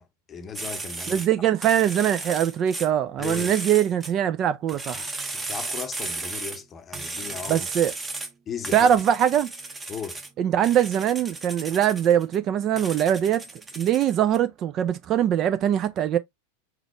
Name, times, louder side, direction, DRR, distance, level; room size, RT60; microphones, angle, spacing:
voice 1, 0.0-1.2 3.2-3.5 5.3-7.7 8.5-8.9 9.9-10.2, left 7 dB, 20° left, 0.7 m, -36 dB
sound 1, 0.5-1.3 1.6-2.9 3.2-4.1 4.7-6.6 6.9-8.3 8.6-10.3 10.6-12.4 12.7-14.4, right 3 dB, 15° right, 0.9 m, -35 dB
voice 2, 1.1-5.0 7.5-7.9 8.7-9.5 10.4-13.4 13.8-16.2, right 10 dB, 30° right, 0.4 m, -22 dB
4.2 x 4.0 x 2.9 m
figure-of-eight pair, 90°, 0 cm